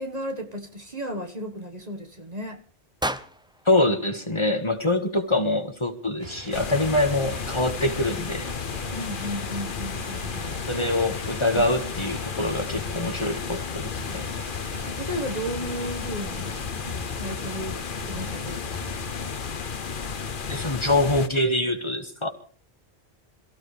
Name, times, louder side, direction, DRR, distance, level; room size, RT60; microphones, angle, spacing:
voice 1, 0.0-2.6 8.9-10.9 11.5-11.6 14.8-19.3, equal, 40° right, 1.7 m, -35 dB
sound 1, 3.0-5.1, right 1 dB, 5° right, 0.6 m, -35 dB
voice 2, 3.7-8.5 10.7-14.3 20.5-22.3, left 1 dB, 25° left, 1.8 m, -24 dB
sound 2, 6.2-19.3, right 3 dB, 65° right, 2.7 m, -43 dB
sound 3, 6.5-21.3, left 6 dB, 50° left, 1.1 m, -33 dB
28.0 x 15.5 x 3.4 m
omnidirectional pair, 1.1 m